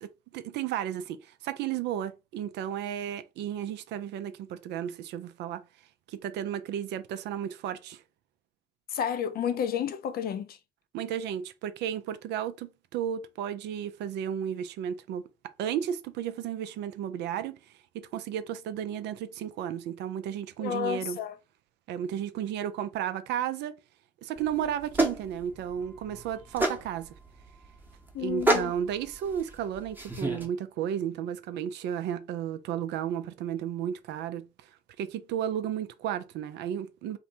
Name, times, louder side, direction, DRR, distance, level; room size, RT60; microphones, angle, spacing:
voice 1, 0.0-5.6 6.1-8.0 10.9-15.2 15.6-17.6 17.9-21.2 21.9-23.7 24.2-27.1 28.2-34.5 35.0-37.2, right 9 dB, 60° right, 0.4 m, -33 dB
voice 2, 8.9-10.6 20.6-21.4 28.1-28.7, left 8 dB, 50° left, 0.5 m, -31 dB
sound 1, 24.4-30.5, right 1 dB, 10° right, 0.8 m, -31 dB
2.6 x 2.1 x 2.7 m
hypercardioid pair, 50°, 20 cm